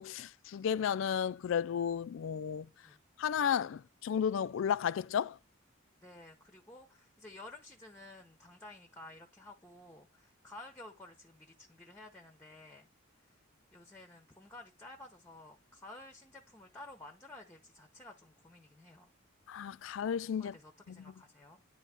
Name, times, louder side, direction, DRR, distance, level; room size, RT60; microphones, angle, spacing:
voice 1, 0.0-2.7 3.2-5.4 19.5-20.5 20.9-21.1, left 8 dB, 65° left, 0.3 m, -33 dB
voice 2, 6.0-12.9 13.1-13.4 13.7-19.1 20.4-21.6, left 2 dB, 10° left, 0.7 m, -53 dB
10.0 x 4.0 x 3.4 m
head